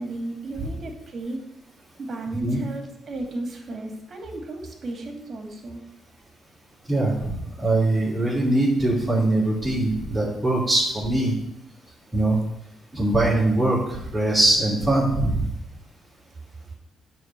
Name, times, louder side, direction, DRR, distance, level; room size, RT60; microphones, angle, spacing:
voice 1, 0.0-1.4 2.0-5.8, right 2 dB, 45° right, 3 dB, 2.5 m, -34 dB
voice 2, 6.9-11.3 12.1-12.4 12.9-15.4, right 2 dB, 20° right, -8 dB, 3.2 m, -22 dB
9.5 x 4.3 x 7.5 m, 0.82 s
cardioid pair, 90°, 0 cm